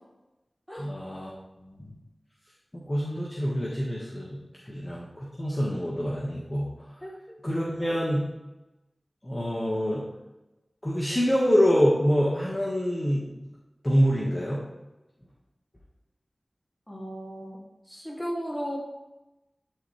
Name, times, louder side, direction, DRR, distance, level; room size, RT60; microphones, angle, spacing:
voice 1, 0.8-1.3 1.6-1.9 2.7-4.4 4.7-6.7 7.4-8.2 9.2-10.0 10.8-13.3 13.8-14.6, equal, 20° left, -6 dB, 1.6 m, -26 dB
voice 2, 16.9-17.6 17.9-18.8, equal, ahead, -4 dB, 2.6 m, -35 dB
11.0 x 4.2 x 3.3 m, 1.0 s
cardioid pair, 40°, 0 cm